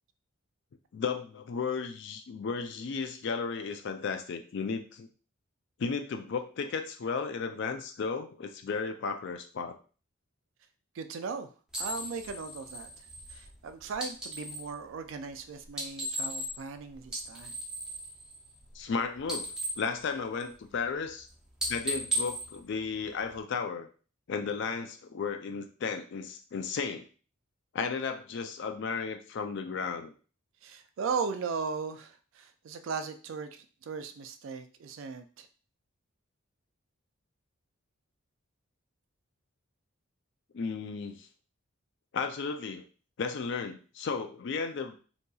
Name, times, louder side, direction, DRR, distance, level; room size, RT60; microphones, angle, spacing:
voice 1, 0.9-5.1 5.8-9.7 18.8-19.5 19.8-21.3 21.7-23.9 24.3-27.1 27.7-30.1 40.5-41.3 42.1-42.8 43.2-44.9, left 5 dB, 55° left, 7 dB, 0.3 m, -34 dB
voice 2, 10.9-11.5 11.8-12.9 13.3-17.5 30.6-35.5, right 5 dB, 60° right, 8 dB, 0.3 m, -37 dB
sound 1, 11.7-14.7 15.6-16.7 17.0-18.9 19.2-20.7 21.1-21.3 21.6-23.4, right 1 dB, 5° right, 0.6 m, -36 dB
2.7 x 2.7 x 2.3 m, 0.38 s
head